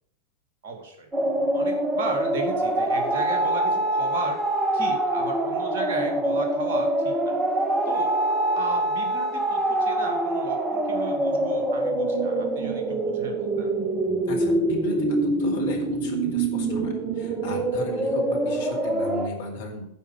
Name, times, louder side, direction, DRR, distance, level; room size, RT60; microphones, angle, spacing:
voice 1, 0.6-1.1 1.5-4.4 4.7-6.9 7.2-7.4 7.9-8.1 8.5-13.7, right 3 dB, 55° right, 4 dB, 2.3 m, -34 dB
sound 1, 1.1-19.3, right 1 dB, 15° right, 1.2 m, -25 dB
voice 2, 14.3-19.8, left 2 dB, 60° left, 1 dB, 2.4 m, -36 dB
9.9 x 5.4 x 7.3 m, 0.74 s
figure-of-eight pair, 90°, 0 cm